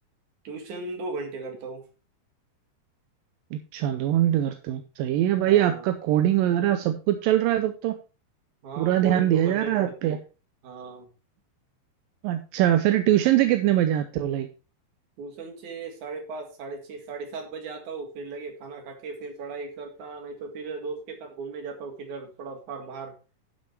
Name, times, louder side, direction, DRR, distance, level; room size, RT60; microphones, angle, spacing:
voice 1, 0.4-1.8 5.4-5.9 8.6-10.2 10.6-11.1 15.2-23.1, right 4 dB, 55° right, 4 dB, 3.1 m, -37 dB
voice 2, 3.5-8.0 8.8-10.2 12.2-14.5, right 12 dB, 75° right, 8 dB, 2.1 m, -23 dB
11.5 x 5.7 x 4.5 m, 0.33 s
omnidirectional pair, 4.6 m